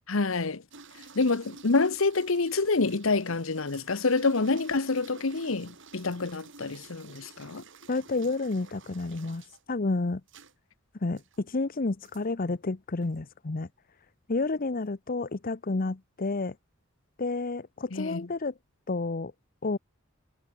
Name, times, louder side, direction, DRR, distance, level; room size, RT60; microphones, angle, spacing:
voice 1, 0.1-0.6 1.1-7.6 17.9-18.3, left 3 dB, 70° left, 1.1 m, -27 dB
sound 1, 0.7-9.6 10.3-10.5 11.2-11.4 12.0-12.2 13.0-13.2, right 4 dB, 60° right, 5.8 m, -51 dB
voice 2, 7.9-10.2 11.0-13.7 14.3-16.5 17.2-18.5 18.9-19.3 19.6-19.8, left 3 dB, 45° left, 0.8 m, -30 dB
head